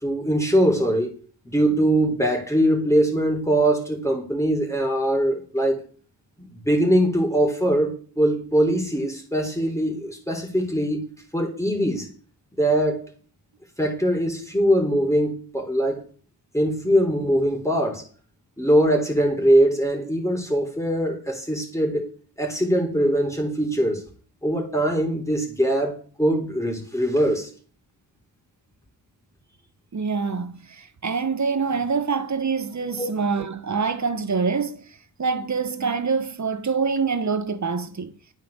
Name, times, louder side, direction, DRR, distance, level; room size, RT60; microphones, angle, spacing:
voice 1, 0.0-1.1 1.5-5.8 6.4-11.1 11.3-12.1 12.6-13.1 13.8-16.0 16.5-18.1 18.6-22.1 22.4-24.0 24.4-27.5 33.0-33.1, right 1 dB, 5° left, 3.6 m, -22 dB
voice 2, 29.9-34.8 35.2-38.1, right 5 dB, 40° right, 1.6 m, -25 dB
9.3 x 8.1 x 6.6 m
cardioid pair, 60°, 41 cm